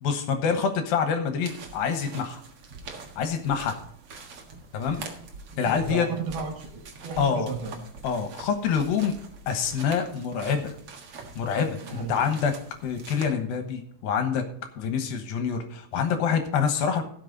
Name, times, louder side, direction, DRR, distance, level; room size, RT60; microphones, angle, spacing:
voice 1, 0.0-2.4 3.2-3.8 4.7-5.1 5.6-6.1 7.2-7.5 8.0-9.1 9.5-10.7 11.4-12.5 12.8-14.4 14.8-17.0, left 6 dB, 70° left, 7 dB, 2.8 m, -26 dB
sound 1, 1.4-13.3, right 4 dB, 50° right, 1.9 m, -44 dB
voice 2, 5.7-7.8 11.8-12.2, right 5 dB, 75° right, 4 dB, 3.7 m, -33 dB
16.5 x 6.5 x 3.9 m, 0.64 s
omnidirectional pair, 4.6 m